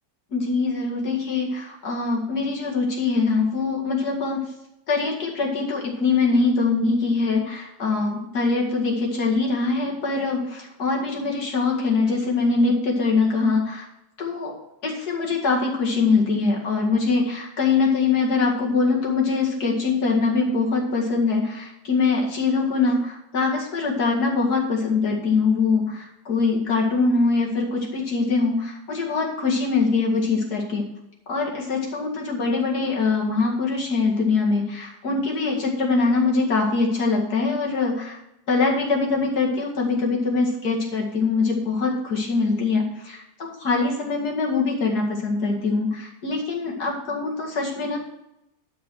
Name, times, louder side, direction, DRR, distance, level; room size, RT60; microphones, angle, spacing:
voice 1, 0.3-4.4 4.9-13.9 14.2-14.5 14.8-30.8 31.3-38.2 38.5-48.0, left 4 dB, 60° left, -2 dB, 2.7 m, -23 dB
12.0 x 4.7 x 6.3 m, 0.86 s
omnidirectional pair, 1.9 m